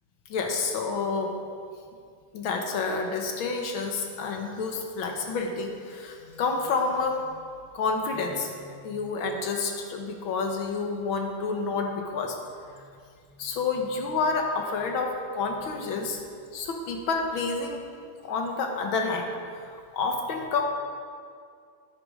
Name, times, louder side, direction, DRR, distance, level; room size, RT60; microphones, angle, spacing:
voice 1, 0.3-1.3 2.3-7.3 7.7-8.6 8.8-12.4 12.8-12.9 13.4-16.2 16.5-17.8 18.2-19.3 19.6-20.6, left 4 dB, 80° left, 3 dB, 2.0 m, -29 dB
10.5 x 9.7 x 5.0 m, 2.2 s
omnidirectional pair, 2.2 m